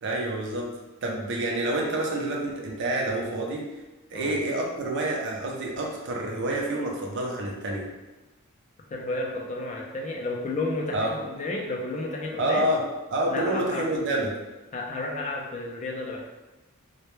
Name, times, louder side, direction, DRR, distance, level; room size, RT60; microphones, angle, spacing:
voice 1, 0.0-0.7 1.0-3.6 4.1-7.9 10.9-11.1 12.4-12.8 13.1-14.3, right 1 dB, 55° right, -1 dB, 0.5 m, -28 dB
voice 2, 8.9-12.7 13.3-13.9 14.7-16.3, left 2 dB, 35° left, -1 dB, 0.4 m, -32 dB
2.1 x 2.1 x 3.0 m, 1.1 s
head